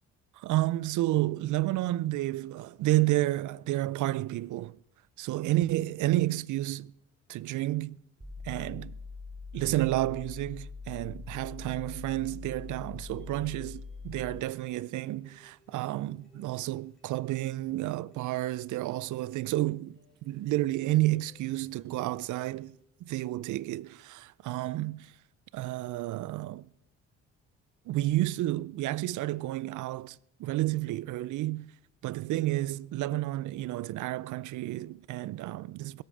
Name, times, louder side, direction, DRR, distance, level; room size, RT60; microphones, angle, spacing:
voice 1, 0.4-4.8 5.3-6.9 7.3-8.0 8.4-8.9 9.5-22.7 23.0-25.1 25.5-26.7 27.9-31.7 32.0-36.0, right 16 dB, 75° right, 0.5 m, -31 dB
sound 1, 8.2-14.4, left 4 dB, 25° right, 2.7 m, -43 dB
sound 2, 13.0-22.9, left 1 dB, ahead, 4.9 m, -63 dB
22.0 x 8.0 x 4.9 m
cardioid pair, 90°, 30 cm